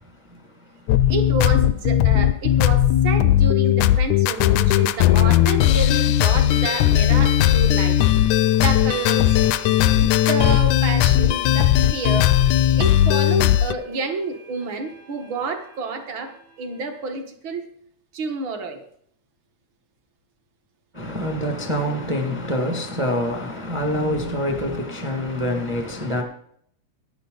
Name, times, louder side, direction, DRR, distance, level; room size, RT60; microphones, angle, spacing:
voice 1, 0.0-1.1 20.9-26.2, equal, 20° right, 0.8 m, -26 dB
sound 1, 0.9-13.7, left 12 dB, 80° left, 1.9 m, -17 dB
voice 2, 1.1-8.0 8.6-9.4 9.9-12.3 12.8-17.6 18.1-18.8, right 4 dB, 50° right, 1.6 m, -29 dB
sound 2, 3.6-3.7 4.7-17.2, equal, 75° right, 5.4 m, -47 dB
14.0 x 10.0 x 3.9 m
omnidirectional pair, 3.4 m